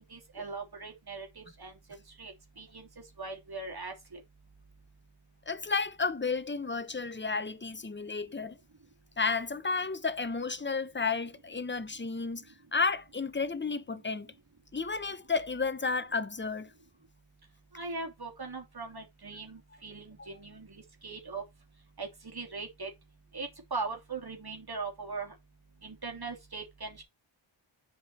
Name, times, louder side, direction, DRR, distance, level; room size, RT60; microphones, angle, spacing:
voice 1, 0.1-1.7 2.2-2.9 3.2-4.2 17.7-21.4 22.0-22.9 23.3-25.3 25.8-27.0, right 4 dB, 50° right, 3.2 m, -40 dB
voice 2, 5.5-8.6 9.2-12.4 12.7-14.3 14.7-16.7 20.2-20.3, left 4 dB, 25° left, 1.1 m, -32 dB
8.0 x 5.4 x 4.2 m
wide cardioid pair, 65°, 47 cm